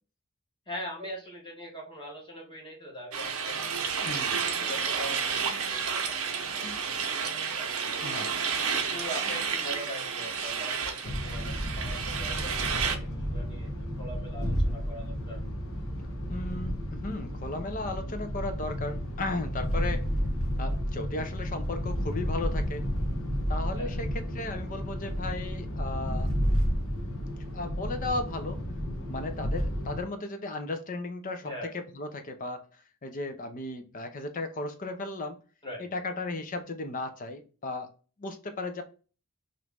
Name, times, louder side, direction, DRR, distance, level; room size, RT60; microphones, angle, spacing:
voice 1, 0.7-4.2 4.6-8.3 8.8-15.4 23.8-24.0 31.4-31.7 35.6-35.9, equal, 20° left, 1.1 m, -42 dB
sound 1, 3.1-13.0, right 6 dB, 70° right, 0.7 m, -31 dB
voice 2, 4.0-4.4 6.6-6.7 8.0-8.4 16.3-20.1 20.6-22.9 23.5-26.3 27.5-28.6 29.1-32.7 33.0-35.4 35.8-37.9 38.2-38.8, left 2 dB, 35° left, 0.5 m, -35 dB
sound 2, 11.0-30.0, equal, 65° left, 1.0 m, -32 dB
3.0 x 2.6 x 3.4 m
head